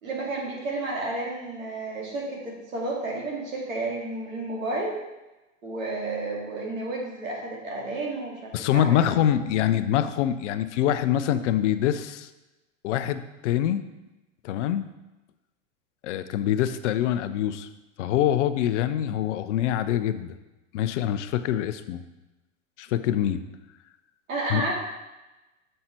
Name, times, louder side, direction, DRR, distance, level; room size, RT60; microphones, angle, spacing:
voice 1, 0.0-4.9 5.6-9.1 24.3-24.8, right 2 dB, 85° right, -2 dB, 2.5 m, -31 dB
voice 2, 8.5-12.3 12.8-13.8 14.4-14.8 16.0-17.7 18.0-20.4 20.7-22.0 22.8-23.4 24.5-24.6, left 11 dB, 65° left, 12 dB, 0.7 m, -25 dB
6.5 x 5.5 x 4.4 m, 1.1 s
hypercardioid pair, 110°, 39 cm